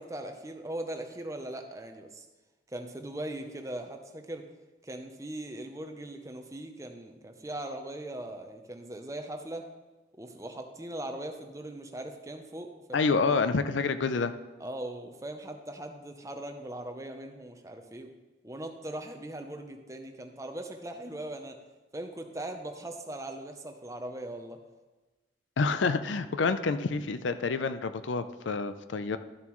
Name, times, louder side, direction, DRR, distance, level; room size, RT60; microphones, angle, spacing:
voice 1, 0.0-2.3 2.7-4.5 4.8-9.7 10.2-13.0 14.6-18.1 18.4-21.6 21.9-24.6, right 1 dB, 15° right, 6 dB, 0.6 m, -40 dB
voice 2, 12.9-14.3 25.6-29.2, left 4 dB, 80° left, 11 dB, 0.5 m, -28 dB
12.5 x 7.2 x 3.1 m, 1.2 s
head